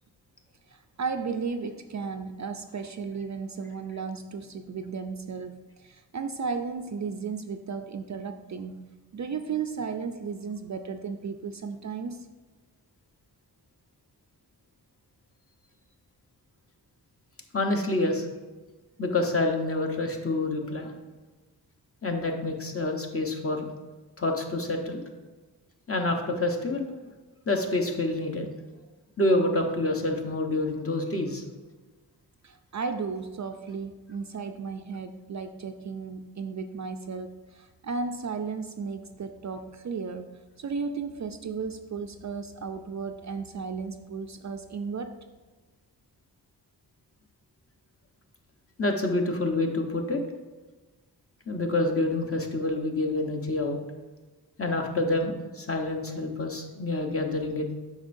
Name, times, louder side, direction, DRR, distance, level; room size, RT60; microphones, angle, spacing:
voice 1, 0.7-8.8 9.1-12.3 32.4-45.1, right 5 dB, 45° right, 7 dB, 0.4 m, -34 dB
voice 2, 17.5-18.3 19.0-20.9 22.0-23.7 24.2-25.0 25.9-26.9 27.5-28.5 29.2-31.4 48.8-50.2 51.5-53.8 54.6-57.8, left 2 dB, 35° left, 2 dB, 1.0 m, -27 dB
8.0 x 5.6 x 2.6 m, 1.3 s
wide cardioid pair, 80°, 41 cm